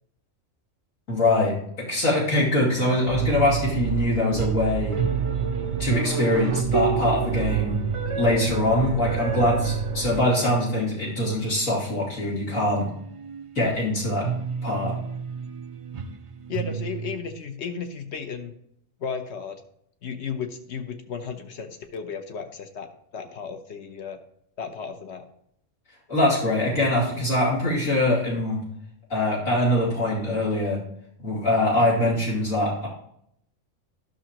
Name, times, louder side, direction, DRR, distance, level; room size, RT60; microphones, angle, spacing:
voice 1, 1.1-5.0 5.8-7.8 8.1-12.9 13.5-14.3 14.6-15.0 26.1-28.6 29.1-30.8 31.2-32.9, left 1 dB, 85° left, -7 dB, 3.0 m, -23 dB
sound 1, 2.8-11.6 12.1-17.2, right 6 dB, 55° right, 0.3 m, -31 dB
sound 2, 3.1-10.2, right 7 dB, 70° right, 0.9 m, -29 dB
voice 2, 16.5-18.5 19.0-19.6 20.0-24.2 24.6-25.3, left 6 dB, 60° left, 7 dB, 1.1 m, -34 dB
11.5 x 6.3 x 2.9 m, 0.72 s
omnidirectional pair, 1.3 m